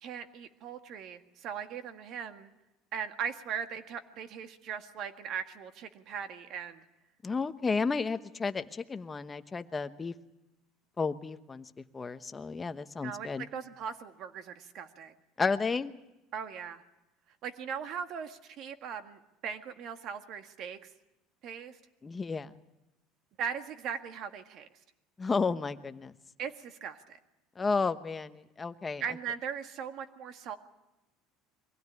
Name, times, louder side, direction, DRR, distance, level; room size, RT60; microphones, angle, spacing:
voice 1, 0.0-2.5 2.9-6.8 13.0-15.1 16.3-16.8 17.4-20.9 21.4-21.8 23.4-24.7 26.4-27.2 29.0-30.6, right 7 dB, 50° right, 7 dB, 1.8 m, -39 dB
voice 2, 7.2-10.1 11.0-13.5 15.4-15.9 22.0-22.5 25.2-26.1 27.6-29.0, left 4 dB, 20° left, 10 dB, 1.0 m, -32 dB
23.5 x 16.5 x 9.6 m, 0.97 s
cardioid pair, 130°, 0 cm